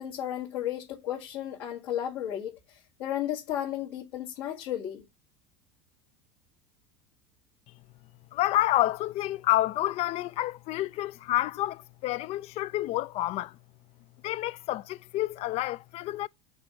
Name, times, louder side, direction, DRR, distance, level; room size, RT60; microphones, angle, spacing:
voice 1, 0.0-2.6 3.0-5.0, left 11 dB, 75° left, 2.0 m, -33 dB
voice 2, 8.3-13.6 14.2-16.3, left 15 dB, 50° left, 0.4 m, -29 dB
6.2 x 4.3 x 6.2 m
hypercardioid pair, 100°, 14 cm